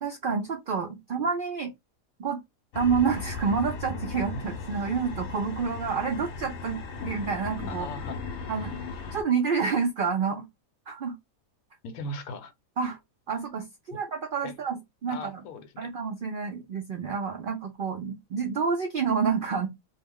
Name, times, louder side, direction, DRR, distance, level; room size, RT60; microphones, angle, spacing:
voice 1, 0.0-1.7 2.2-2.4 2.7-6.8 7.0-7.9 8.5-8.8 9.1-10.5 10.9-11.2 12.8-13.0 13.3-14.7 15.0-15.2 15.8-19.7, right 5 dB, 70° right, 0.5 m, -28 dB
sound 1, 2.7-9.2, left 4 dB, 65° left, 0.8 m, -37 dB
voice 2, 7.7-8.2 11.8-12.5 13.9-14.0 14.4-14.5 15.1-15.9, left 2 dB, 80° left, 1.0 m, -38 dB
2.3 x 2.0 x 3.5 m
omnidirectional pair, 1.5 m